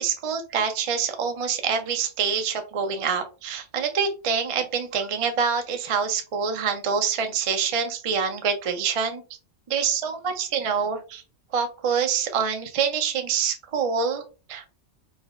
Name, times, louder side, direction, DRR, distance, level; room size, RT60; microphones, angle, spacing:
voice 1, 0.0-9.2 9.7-11.2 11.5-14.2 14.5-14.6, right 6 dB, 60° right, 6 dB, 0.3 m, -26 dB
4.8 x 2.0 x 2.4 m, 0.33 s
omnidirectional pair, 1.3 m